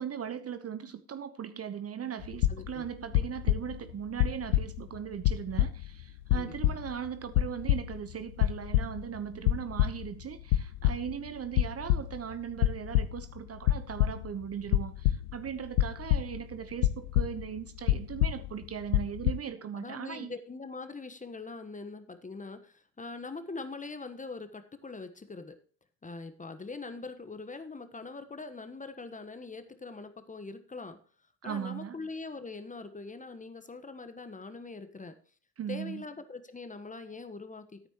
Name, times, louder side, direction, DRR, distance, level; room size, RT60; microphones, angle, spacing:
voice 1, 0.0-20.3 31.4-32.0 35.6-36.0, right 8 dB, 30° right, 12 dB, 1.1 m, -38 dB
sound 1, 2.2-2.8 3.1-3.9 4.2-5.0 5.2-6.0 6.3-7.1 7.4-8.1 8.4-9.2 9.5-10.1 10.4-11.3 11.6-12.3 12.6-13.4 13.7-14.3 14.7-16.5 16.8-17.6 17.9-18.6 18.9-19.3, left 14 dB, 65° left, 0.9 m, -27 dB
voice 2, 2.5-2.9 6.3-6.8 19.7-25.6 26.0-31.0 31.4-35.2 35.7-37.9, left 3 dB, 15° left, 10 dB, 1.3 m, -42 dB
14.0 x 9.1 x 3.1 m, 0.44 s
figure-of-eight pair, 65°, 47 cm